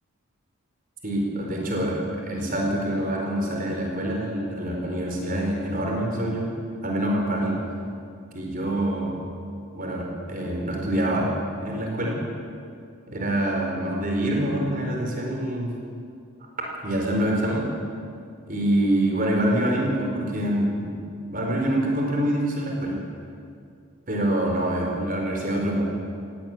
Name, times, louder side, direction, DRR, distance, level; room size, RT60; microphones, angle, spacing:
voice 1, 1.0-6.5 6.8-7.6 8.3-9.2 9.7-11.3 11.6-12.2 13.1-15.7 16.8-17.6 18.5-21.0 21.3-23.0 24.1-25.8, right 1 dB, 40° right, 0 dB, 4.7 m, -25 dB
18.0 x 17.0 x 9.4 m, 2.3 s
head